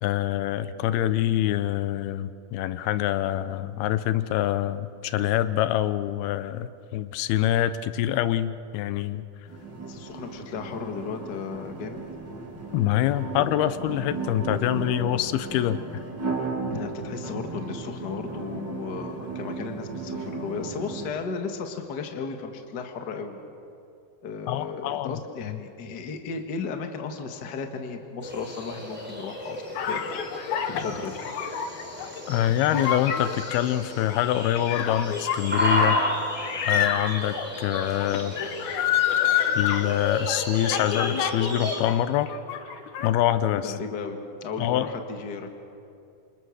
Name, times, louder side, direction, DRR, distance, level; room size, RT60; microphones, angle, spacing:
voice 1, 0.0-9.2 12.7-16.0 24.5-25.2 32.3-36.0 36.7-38.4 39.6-42.3 43.0-43.7 44.6-44.9, left 12 dB, 90° left, 13 dB, 2.7 m, -25 dB
sound 1, 9.5-21.1, right 4 dB, 30° right, 3.4 m, -35 dB
voice 2, 9.9-12.0 12.5-12.6 16.7-23.4 24.2-30.2 30.7-31.2 43.6-45.5, left 5 dB, 45° left, 5 dB, 1.5 m, -35 dB
sound 2, 28.2-41.8, left 1 dB, 5° right, 3.9 m, -33 dB
sound 3, 29.8-42.0 42.2-43.1, left 9 dB, 65° left, 2.1 m, -28 dB
27.5 x 27.5 x 6.5 m, 2.6 s
omnidirectional pair, 4.3 m